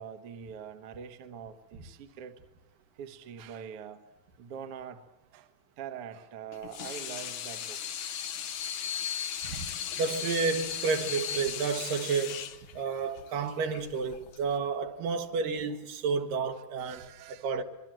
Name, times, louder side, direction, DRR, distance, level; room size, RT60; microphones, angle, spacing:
voice 1, 0.0-2.4 3.0-4.0 4.4-5.1 5.3-5.5 5.8-7.8 9.3-9.8 11.3-11.5 16.8-17.5, right 7 dB, 55° right, 1.9 m, -44 dB
Water tap faucet / Sink (filling or washing), 6.5-14.6, left 9 dB, 70° left, 2.4 m, -37 dB
voice 2, 10.0-12.4 12.7-17.6, right 5 dB, 75° right, 3.1 m, -31 dB
26.0 x 23.0 x 7.7 m
omnidirectional pair, 4.0 m